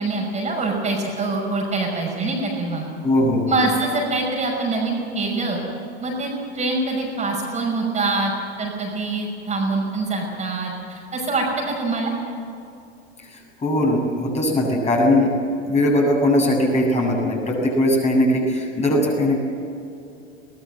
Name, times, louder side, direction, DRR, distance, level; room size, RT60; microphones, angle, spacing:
voice 1, 0.0-2.9 3.5-5.6 6.0-8.3 8.6-12.1, right 3 dB, 20° right, -1 dB, 5.6 m, -24 dB
voice 2, 3.0-3.6 13.2-15.3 15.6-19.4, left 1 dB, 20° left, -1 dB, 7.4 m, -20 dB
23.0 x 19.5 x 7.8 m, 2.7 s
figure-of-eight pair, 85°, 33 cm